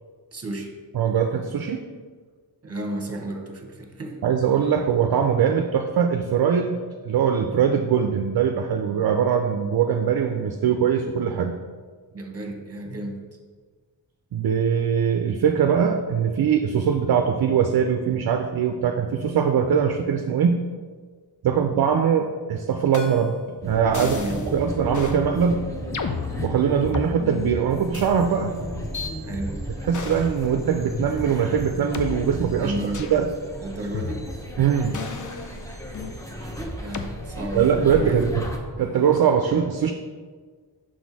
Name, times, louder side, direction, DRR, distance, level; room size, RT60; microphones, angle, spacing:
voice 1, 0.3-0.7 2.6-4.2 12.1-13.2 21.4-21.7 24.0-24.5 29.2-29.5 32.6-33.1 33.6-34.2 36.8-37.7 38.0-38.3, right 1 dB, 30° right, 2 dB, 1.0 m, -32 dB
voice 2, 0.9-1.8 4.2-11.5 14.3-20.6 21.4-23.3 23.6-24.2 24.5-25.6 26.4-28.5 29.8-32.7 33.1-33.3 34.6-35.0 36.4-36.5 37.5-38.3 38.8-39.9, right 7 dB, 55° right, 5 dB, 0.5 m, -22 dB
sound 1, 22.9-23.4 23.9-24.5 24.9-25.2 25.9-27.1 27.9-28.1 28.9-29.1 29.9-30.4 30.9-31.1 31.9-32.1 32.9-33.2 33.9-34.5 34.9-36.2 36.9-37.1 37.9-38.3, left 5 dB, 40° left, 0.5 m, -33 dB
sound 2, 23.6-38.6, equal, 5° left, 0.8 m, -34 dB
6.2 x 4.2 x 4.6 m, 1.5 s
wide cardioid pair, 105°, 46 cm